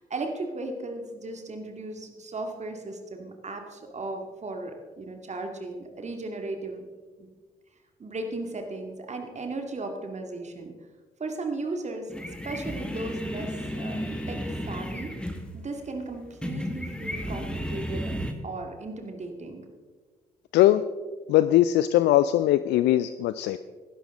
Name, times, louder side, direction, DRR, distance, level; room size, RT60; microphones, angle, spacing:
voice 1, 0.0-6.9 7.2-7.3 8.0-10.7 11.2-12.1 12.4-15.2 15.5-18.1 18.4-19.7, right 2 dB, 35° right, 4 dB, 2.2 m, -36 dB
sound 1, 12.1-18.3, equal, 5° left, 1.8 m, -33 dB
voice 2, 21.3-23.6, left 13 dB, 65° left, 13 dB, 0.5 m, -20 dB
17.0 x 12.0 x 3.7 m, 1.4 s
figure-of-eight pair, 45°, 20 cm